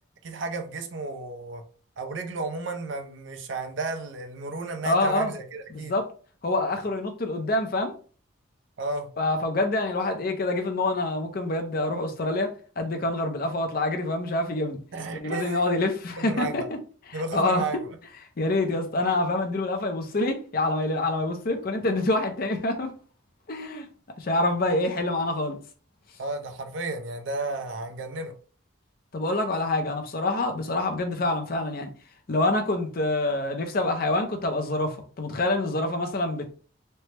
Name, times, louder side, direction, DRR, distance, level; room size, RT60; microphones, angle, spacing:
voice 1, 0.2-1.6 2.0-5.9 8.8-9.1 14.9-15.6 16.2-16.6 17.1-18.0 26.2-28.3, right 3 dB, 65° right, 0.5 m, -33 dB
voice 2, 4.8-5.3 5.7-6.1 6.4-7.9 9.2-14.8 15.1-16.8 17.1-17.6 18.4-22.9 23.5-23.9 24.2-25.6 29.1-31.9 32.3-36.5, left 2 dB, 45° left, 0.5 m, -26 dB
3.3 x 2.1 x 2.8 m
head